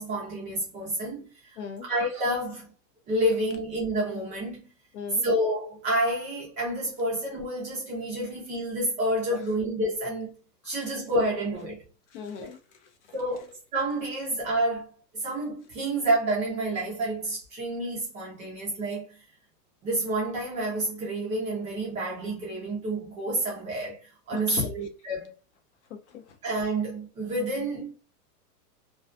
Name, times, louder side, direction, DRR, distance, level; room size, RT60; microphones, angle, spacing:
voice 1, 0.0-1.6 1.9-2.7 3.1-4.7 5.2-10.3 10.6-11.8 13.1-14.9 15.1-19.1 19.8-25.3 26.4-27.9, right 1 dB, 15° right, 0.4 m, -29 dB
voice 2, 1.6-1.9 4.9-5.3 9.3-9.4 12.1-13.2 24.3-24.7 25.9-26.4, left 7 dB, 45° left, 0.5 m, -38 dB
2.3 x 2.2 x 2.4 m
hypercardioid pair, 140°, 49 cm